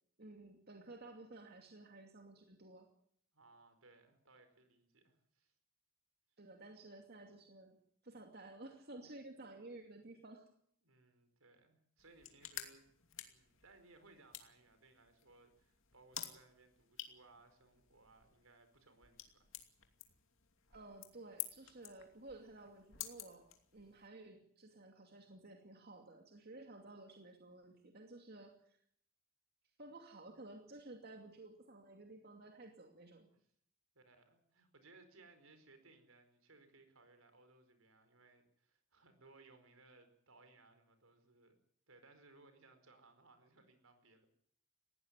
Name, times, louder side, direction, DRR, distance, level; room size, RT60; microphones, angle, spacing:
voice 1, 0.2-2.9 6.4-7.8 8.0-10.4 20.7-23.4 23.7-28.8 29.8-33.3, right 2 dB, 45° right, 3 dB, 2.6 m, -54 dB
voice 2, 3.3-5.5 10.8-12.8 13.2-19.5 33.9-41.6 41.9-44.3, right 3 dB, 75° right, 8 dB, 4.7 m, -64 dB
sound 1, 12.0-24.1, left 11 dB, 65° left, 2.6 m, -52 dB
19.5 x 16.0 x 9.8 m, 0.66 s
head